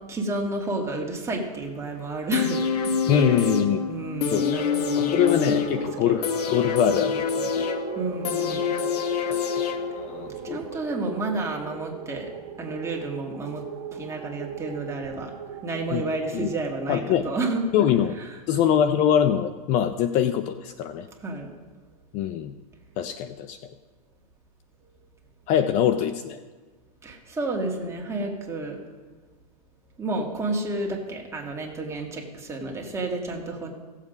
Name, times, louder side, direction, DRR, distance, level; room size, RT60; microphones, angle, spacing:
voice 1, 0.1-3.5 3.9-6.1 7.9-8.6 10.3-12.3 12.6-13.6 13.9-15.3 15.6-17.6 21.2-21.5 27.0-28.8 30.0-33.7, right 2 dB, 15° right, 0 dB, 2.1 m, -31 dB
sound 1, 2.3-10.3 10.6-10.7, left 6 dB, 90° left, 1.1 m, -27 dB
voice 2, 3.1-3.8 4.3-4.6 5.0-7.7 9.3-9.6 9.9-10.6 15.9-16.0 16.3-16.5 16.9-17.3 17.7-18.2 18.5-21.1 22.1-22.5 23.0-23.6 25.5-26.4, left 9 dB, 40° left, 11 dB, 0.5 m, -23 dB
sound 2, 4.3-18.9, right 7 dB, 50° right, 1.4 m, -38 dB
17.0 x 7.4 x 5.2 m, 1.3 s
supercardioid pair, 135°, 20 cm